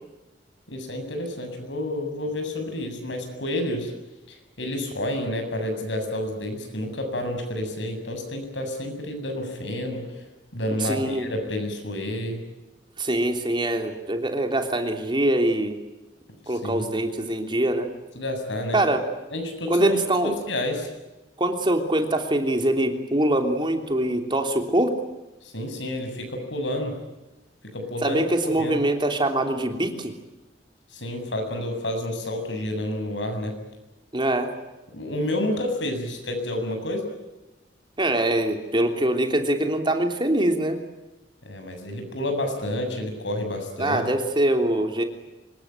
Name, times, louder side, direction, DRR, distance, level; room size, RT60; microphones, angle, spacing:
voice 1, 0.7-3.9 4.3-10.2 10.5-12.4 16.5-16.9 18.1-18.8 19.3-20.0 20.2-20.9 25.4-27.0 27.6-28.8 30.9-33.6 34.9-37.1 41.4-44.0, left 1 dB, 85° left, 5 dB, 7.5 m, -30 dB
voice 2, 10.8-11.3 13.0-15.8 16.5-17.9 18.7-19.0 19.7-20.4 21.4-24.9 28.0-30.1 34.1-34.5 38.0-40.8 43.8-45.0, right 1 dB, 25° right, 5 dB, 3.2 m, -23 dB
26.0 x 22.0 x 9.1 m, 1.0 s
head